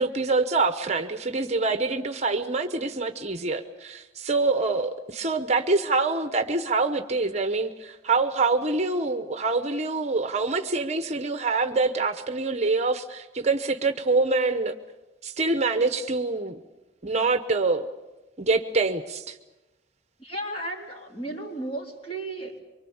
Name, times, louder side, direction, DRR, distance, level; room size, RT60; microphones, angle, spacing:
voice 1, 0.0-14.7 15.2-16.6 17.0-17.9 18.4-19.4, right 3 dB, 35° right, 8 dB, 1.0 m, -25 dB
voice 2, 20.2-22.6, right 1 dB, 30° left, 0 dB, 3.7 m, -34 dB
24.5 x 24.0 x 7.2 m, 1.1 s
head